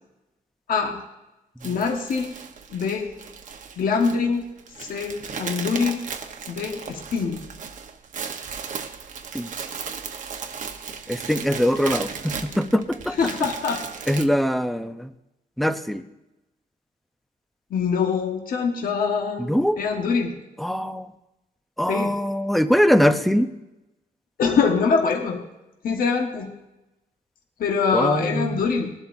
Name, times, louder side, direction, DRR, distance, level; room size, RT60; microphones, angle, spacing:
voice 1, 0.7-1.0 1.6-2.3 2.7-3.1 3.8-4.4 4.8-6.0 6.5-7.5 13.1-13.8 17.7-20.3 21.9-22.2 24.4-25.5 25.8-26.5 27.6-28.9, left 5 dB, 60° left, 2 dB, 1.4 m, -24 dB
sound 1, 1.6-14.3, right 6 dB, 50° right, 1.0 m, -36 dB
voice 2, 11.1-13.1 14.1-15.1 15.6-16.0 19.5-19.8 20.6-21.1 21.8-23.5 27.9-28.6, equal, ahead, 9 dB, 0.6 m, -22 dB
20.0 x 12.0 x 2.7 m, 0.97 s
wide cardioid pair, 155°, 16 cm